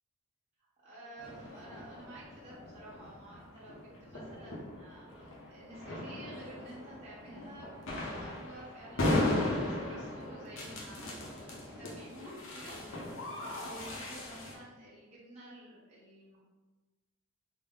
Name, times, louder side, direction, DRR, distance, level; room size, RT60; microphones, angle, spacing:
voice 1, 0.8-11.2 11.6-16.4, right 1 dB, 30° right, -9 dB, 1.0 m, -51 dB
sound 1, 1.2-14.5, left 1 dB, 60° left, 0.7 m, -37 dB
3.5 x 2.0 x 3.6 m, 1.2 s
head